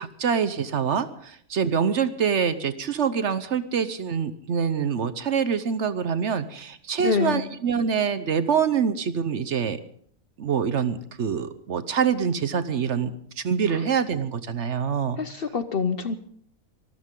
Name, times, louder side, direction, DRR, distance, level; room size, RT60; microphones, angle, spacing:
voice 1, 0.0-9.8 10.4-15.2, right 7 dB, 55° right, 13 dB, 1.1 m, -25 dB
voice 2, 7.0-7.4 15.2-16.2, left 5 dB, 50° left, 11 dB, 0.8 m, -26 dB
24.5 x 14.0 x 3.8 m, 0.62 s
omnidirectional pair, 1.5 m